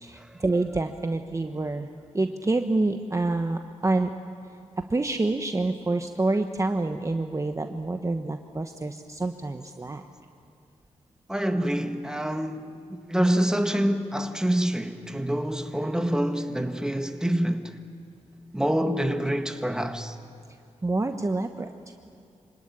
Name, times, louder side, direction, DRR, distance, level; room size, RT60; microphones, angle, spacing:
voice 1, 0.0-1.9 2.1-4.1 4.8-10.0 20.8-21.7, right 2 dB, 25° right, 1.1 m, -27 dB
voice 2, 11.3-17.8 18.5-20.2, right 1 dB, 5° right, 1.7 m, -26 dB
26.5 x 18.0 x 9.9 m
cardioid pair, 70°, 12 cm